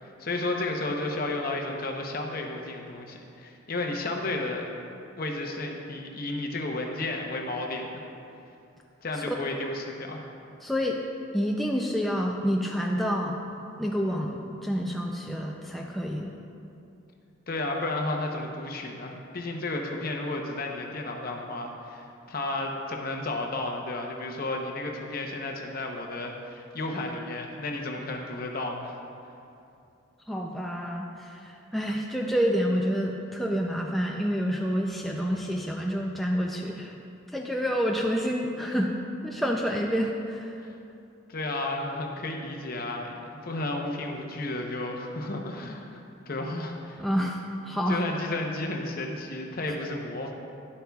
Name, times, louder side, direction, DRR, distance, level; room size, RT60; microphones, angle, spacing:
voice 1, 0.0-4.7 5.2-8.0 9.0-10.3 17.5-29.0 40.6-40.7 41.3-47.0 47.9-50.3, left 2 dB, 50° left, 1 dB, 0.8 m, -32 dB
voice 2, 10.6-11.0 11.3-13.4 13.8-16.3 30.3-36.9 37.3-38.9 39.2-40.6 47.0-47.4 47.6-48.0, equal, ahead, -1 dB, 0.3 m, -28 dB
11.0 x 8.4 x 2.3 m, 2.6 s
head